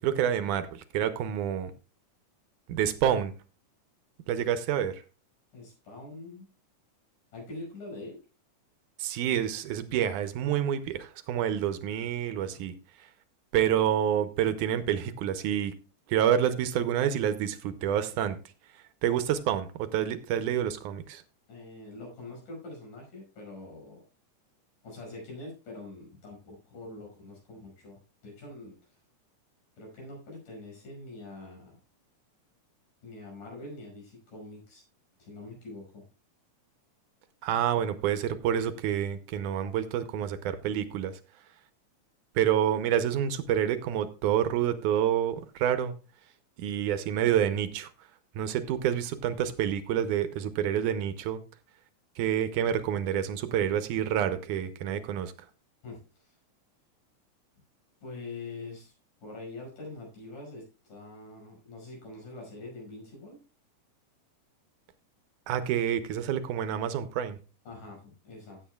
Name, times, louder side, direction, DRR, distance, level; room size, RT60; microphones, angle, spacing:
voice 1, 0.0-1.7 2.7-3.3 4.3-5.0 9.0-12.7 13.5-15.7 16.1-18.4 19.0-21.2 37.4-41.1 42.4-45.9 46.6-47.9 48.4-51.4 52.2-55.3 65.5-67.4, right 10 dB, 75° right, 11 dB, 2.2 m, -28 dB
voice 2, 5.5-6.5 7.3-8.2 12.5-12.7 21.5-24.0 24.8-28.8 29.8-31.8 33.0-34.8 35.2-36.0 55.8-56.4 58.0-58.9 59.2-63.4 67.7-68.6, left 2 dB, 80° left, -1 dB, 7.1 m, -44 dB
15.5 x 8.2 x 2.3 m, 0.33 s
omnidirectional pair, 3.7 m